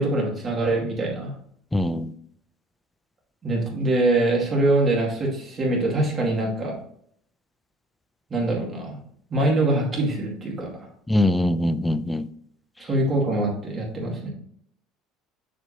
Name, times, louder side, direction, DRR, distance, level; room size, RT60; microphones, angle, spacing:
voice 1, 0.0-1.3 3.4-6.7 8.3-9.0 9.3-10.9 12.8-14.3, right 2 dB, 25° right, -1 dB, 2.2 m, -23 dB
voice 2, 1.7-2.1 11.1-12.3, left 1 dB, 5° left, 12 dB, 0.3 m, -22 dB
7.4 x 6.6 x 2.8 m, 0.65 s
cardioid pair, 165°, 0 cm